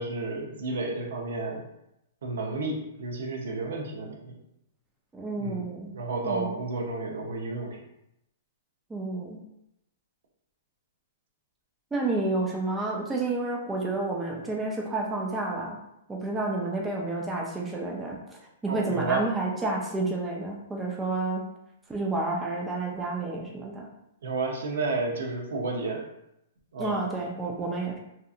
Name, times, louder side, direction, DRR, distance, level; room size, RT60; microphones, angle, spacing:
voice 1, 0.0-1.7 2.2-4.4 5.4-7.8 18.7-19.3 24.2-26.0 26.7-27.0, right 3 dB, 75° right, 0 dB, 0.7 m, -31 dB
voice 2, 5.1-5.9 6.2-6.6 8.9-9.4 11.9-15.8 16.1-21.4 21.9-23.9 26.8-28.0, right 2 dB, 10° right, -2 dB, 0.4 m, -30 dB
2.8 x 2.4 x 2.4 m, 0.83 s
hypercardioid pair, 140°, 0 cm